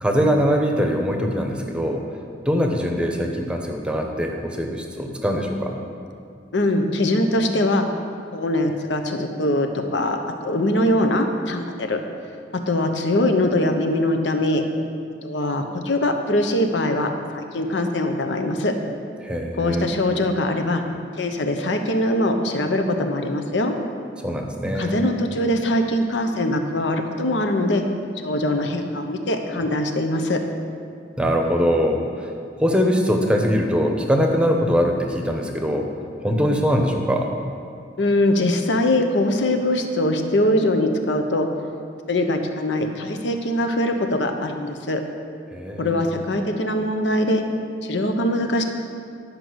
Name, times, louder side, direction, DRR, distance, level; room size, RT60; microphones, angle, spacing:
voice 1, 0.0-2.1 2.5-5.7 19.2-19.9 24.2-25.0 31.2-32.3 32.6-35.9 36.2-37.3 45.5-46.0, equal, 5° right, 2 dB, 0.8 m, -22 dB
voice 2, 6.5-7.9 8.3-12.0 12.7-14.6 15.2-18.7 19.6-20.8 21.2-23.8 24.7-27.8 28.2-30.4 38.0-41.5 42.1-45.0 45.8-47.4 47.8-48.6, left 1 dB, 75° left, 5 dB, 0.9 m, -22 dB
11.0 x 5.2 x 6.2 m, 2.3 s
head